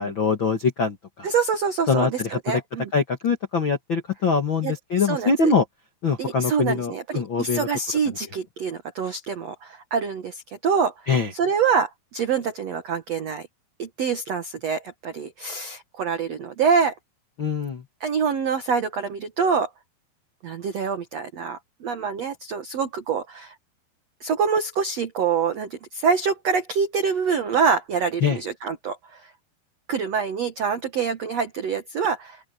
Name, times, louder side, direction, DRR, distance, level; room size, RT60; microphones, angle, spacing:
voice 1, 0.0-1.3 1.9-2.6 2.9-5.6 6.0-7.7 11.1-11.3 17.4-17.8 28.2-28.4, left 5 dB, 60° left, 1.3 m, -23 dB
voice 2, 1.2-2.9 4.6-5.5 6.2-10.9 11.3-13.5 13.8-16.9 18.0-19.7 20.4-23.5 24.2-29.2 29.9-32.4, right 6 dB, 75° right, 1.5 m, -25 dB
open air
omnidirectional pair, 5.1 m